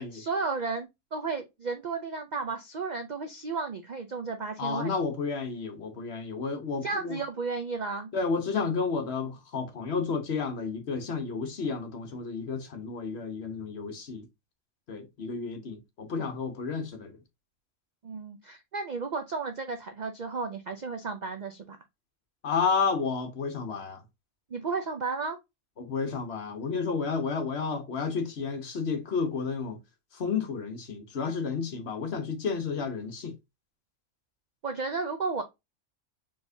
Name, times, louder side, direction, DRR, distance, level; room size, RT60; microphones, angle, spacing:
voice 1, 0.0-5.0 6.8-8.1 18.0-21.8 24.5-25.4 34.6-35.4, right 4 dB, 60° right, 0.4 m, -33 dB
voice 2, 4.6-7.2 8.1-14.3 14.9-17.1 22.4-24.0 25.8-29.8 30.1-33.3, left 5 dB, 55° left, 1.1 m, -31 dB
4.4 x 3.6 x 2.6 m
omnidirectional pair, 1.4 m